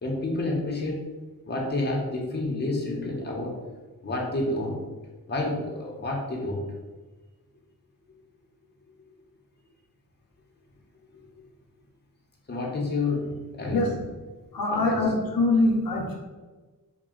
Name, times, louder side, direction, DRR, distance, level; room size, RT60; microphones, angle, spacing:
voice 1, 0.0-1.0 1.5-3.6 4.0-4.8 5.3-6.6 11.1-11.2 12.5-14.0 14.7-15.1, left 2 dB, 30° left, -2 dB, 1.0 m, -29 dB
voice 2, 14.5-16.1, left 2 dB, 70° left, -1 dB, 0.9 m, -23 dB
4.1 x 2.4 x 3.8 m, 1.3 s
cardioid pair, 70°, 37 cm